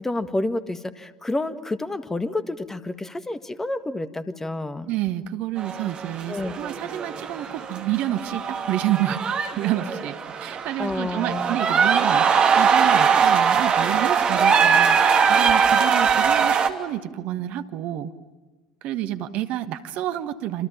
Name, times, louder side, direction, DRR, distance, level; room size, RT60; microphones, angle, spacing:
voice 1, 0.0-4.9 6.3-6.5 10.8-11.6, left 2 dB, 10° left, 11 dB, 1.8 m, -29 dB
voice 2, 4.9-12.3 12.5-15.0 15.3-18.1 18.8-20.7, right 13 dB, 50° right, 11 dB, 1.4 m, -29 dB
sound 1, 5.6-16.7, right 6 dB, 35° right, 2.7 m, -21 dB
29.0 x 27.0 x 7.2 m, 1.2 s
figure-of-eight pair, 65°, 3 cm